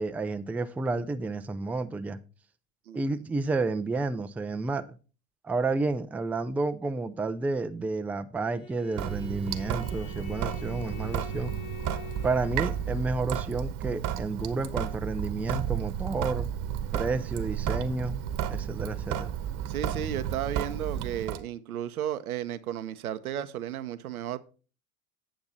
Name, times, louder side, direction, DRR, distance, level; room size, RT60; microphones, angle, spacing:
voice 1, 0.0-2.2 2.9-4.8 5.4-11.5 12.2-16.5 16.9-18.2 18.5-19.3, right 3 dB, 5° right, 9 dB, 0.4 m, -31 dB
Bowed string instrument, 8.4-13.2, left 6 dB, 70° left, 3.0 m, -46 dB
Sink (filling or washing) / Drip, 8.9-21.4, right 10 dB, 50° right, 1.1 m, -32 dB
voice 2, 19.7-24.4, right 10 dB, 85° right, 11 dB, 0.8 m, -34 dB
9.0 x 7.0 x 4.0 m, 0.35 s
hypercardioid pair, 85°, 42 cm